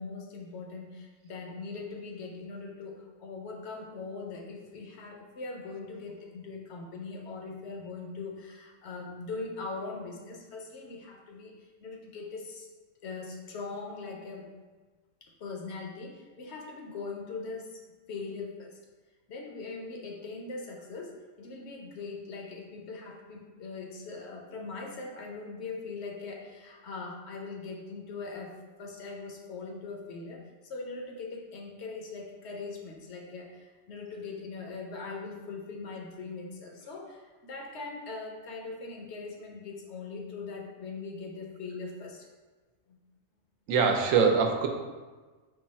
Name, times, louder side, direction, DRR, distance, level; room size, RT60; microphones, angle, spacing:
voice 1, 0.0-12.7 13.0-14.5 15.2-17.8 18.1-18.8 19.3-42.3 42.9-43.0, left 4 dB, 65° left, 0 dB, 0.8 m, -41 dB
voice 2, 43.7-44.7, right 5 dB, 80° right, 4 dB, 1.0 m, -23 dB
4.7 x 2.3 x 4.1 m, 1.3 s
omnidirectional pair, 1.3 m